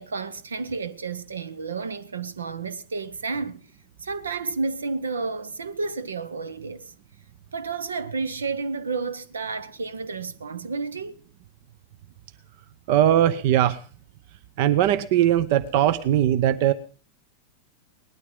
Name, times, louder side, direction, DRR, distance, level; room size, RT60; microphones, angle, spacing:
voice 1, 0.0-3.7 4.0-6.9 7.5-11.2, right 4 dB, 70° right, 1.1 m, -31 dB
voice 2, 12.9-13.8 14.6-16.7, right 11 dB, 50° right, 0.8 m, -20 dB
19.0 x 12.5 x 5.4 m
figure-of-eight pair, 90°, 0 cm